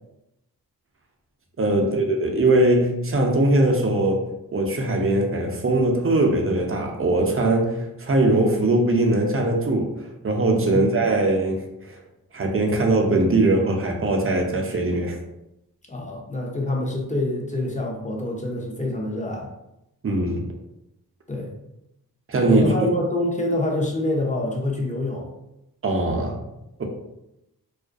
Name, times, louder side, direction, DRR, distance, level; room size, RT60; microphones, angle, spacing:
voice 1, 1.6-4.2 4.5-12.0 12.3-15.2 20.0-20.5 22.3-22.9 25.8-26.4, right 2 dB, 35° right, 1 dB, 0.5 m, -21 dB
voice 2, 15.9-19.5 21.3-21.5 22.4-25.3, left 1 dB, 20° left, -1 dB, 0.7 m, -26 dB
2.4 x 2.1 x 2.5 m, 0.88 s
cardioid pair, 55°, 37 cm